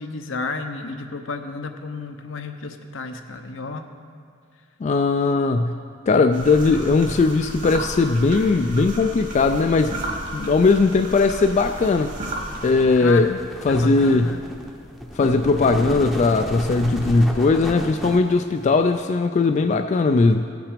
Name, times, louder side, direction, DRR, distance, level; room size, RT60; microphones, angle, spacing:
voice 1, 0.0-3.9 12.9-13.3 13.7-14.4, left 3 dB, 80° left, 6 dB, 0.7 m, -32 dB
voice 2, 4.8-5.7 6.1-10.0 10.3-12.1 12.6-13.4 13.6-14.3 15.2-20.5, left 3 dB, 35° left, 7 dB, 0.3 m, -19 dB
sound 1, 6.3-12.7, right 1 dB, 40° right, 1.5 m, -33 dB
sound 2, 12.5-19.0, equal, ahead, 0.7 m, -33 dB
16.0 x 5.9 x 5.0 m, 2.3 s
head